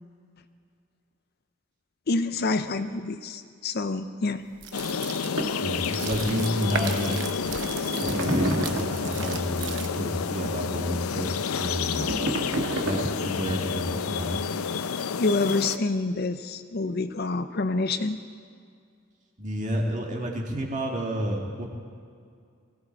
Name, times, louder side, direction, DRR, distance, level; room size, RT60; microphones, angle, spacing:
voice 1, 2.1-4.4 15.2-18.2, left 3 dB, 45° left, 10 dB, 0.5 m, -27 dB
sound 1, 4.5-10.2, right 6 dB, 55° right, 0.9 m, -37 dB
sound 2, 4.7-15.8, left 6 dB, 90° left, 0.6 m, -30 dB
sound 3, 5.4-5.6 7.2-7.3 7.6-9.0 11.6-13.4, right 1 dB, 75° right, 1.9 m, -29 dB
voice 2, 5.6-7.2 8.0-12.0 12.8-14.4 19.4-21.7, equal, 35° right, 0 dB, 2.0 m, -30 dB
19.5 x 16.5 x 4.6 m, 2.2 s
head